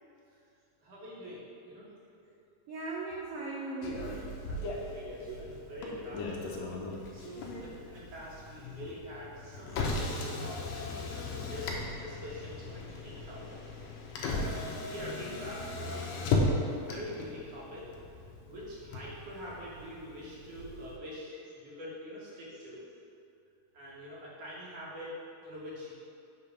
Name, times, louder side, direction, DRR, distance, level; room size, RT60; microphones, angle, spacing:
voice 1, 0.8-1.9 4.5-6.6 6.9-13.6 14.0-14.5 14.8-16.3 16.6-17.9 18.5-22.8 23.7-25.9, equal, 60° right, -6 dB, 2.2 m, -45 dB
voice 2, 2.7-4.3 5.3-5.6 16.1-16.2, right 3 dB, 90° right, -3 dB, 1.3 m, -39 dB
Motor vehicle (road), 3.8-21.0, left 2 dB, 75° left, 1.8 m, -37 dB
6.8 x 3.3 x 5.7 m, 2.5 s
omnidirectional pair, 3.4 m